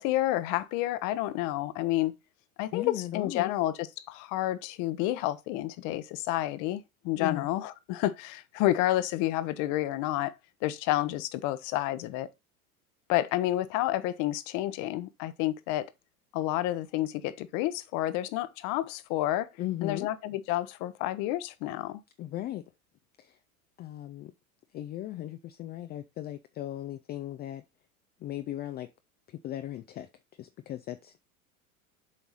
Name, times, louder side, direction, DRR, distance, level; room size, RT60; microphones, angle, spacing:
voice 1, 0.0-2.2 2.6-10.3 10.6-12.3 13.1-15.9 16.3-19.5 19.8-22.0, left 15 dB, 45° left, 0.9 m, -30 dB
voice 2, 2.7-3.5 7.2-7.5 19.6-20.1 22.2-22.6 23.2-23.4 23.8-24.3 24.7-27.6 28.2-28.9 29.3-30.1 30.4-31.2, left 13 dB, 25° left, 0.4 m, -37 dB
7.5 x 4.6 x 4.1 m
figure-of-eight pair, 85°, 43 cm